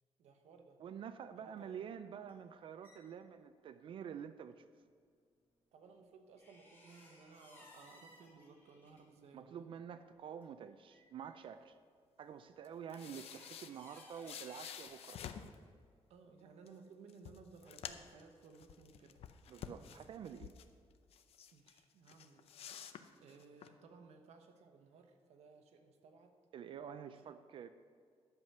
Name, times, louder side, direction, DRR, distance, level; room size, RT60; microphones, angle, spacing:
voice 1, 0.2-0.8 1.4-1.9 5.7-9.7 16.1-19.2 21.5-22.5 23.2-26.3 27.0-27.3, right 4 dB, 90° right, 5 dB, 1.1 m, -59 dB
voice 2, 0.8-4.6 9.3-11.8 12.2-15.2 19.5-20.5 26.5-27.7, right 8 dB, 55° right, 11 dB, 0.4 m, -48 dB
sound 1, 2.3-3.0 6.4-9.0 10.1-10.2 10.4-10.5 10.9-11.3 12.9-14.9, left 1 dB, 20° left, 2.5 m, -61 dB
sound 2, 12.6-15.6 16.7-16.8 17.1-18.2 18.5-20.7 21.1-21.8 22.1-23.7, left 9 dB, 70° left, 0.6 m, -50 dB
11.0 x 7.4 x 5.5 m, 2.1 s
wide cardioid pair, 170°, 11 cm